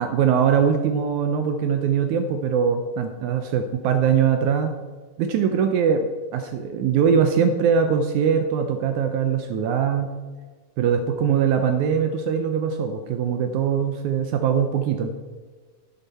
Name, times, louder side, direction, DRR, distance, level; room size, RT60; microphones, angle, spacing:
voice 1, 0.0-4.7 5.2-10.1 10.8-15.1, right 7 dB, 80° right, 7 dB, 1.7 m, -22 dB
11.0 x 9.2 x 4.2 m, 1.4 s
omnidirectional pair, 4.1 m